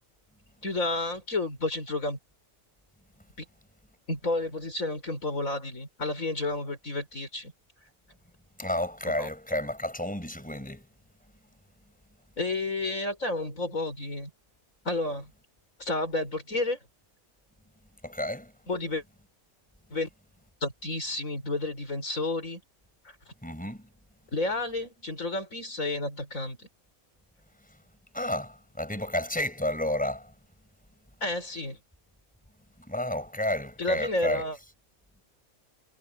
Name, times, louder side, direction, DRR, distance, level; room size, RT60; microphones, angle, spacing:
voice 1, 0.6-2.2 4.1-7.5 9.2-9.3 12.4-14.3 14.8-15.3 15.8-16.8 18.7-19.0 19.9-20.1 20.6-22.6 23.0-23.3 24.3-26.7 31.2-31.8 33.8-34.6, left 2 dB, 65° left, 5.6 m, -31 dB
voice 2, 8.6-10.8 18.0-18.5 23.4-23.9 28.1-30.3 32.9-34.5, left 1 dB, 5° left, 5.9 m, -31 dB
omnidirectional pair, 1.5 m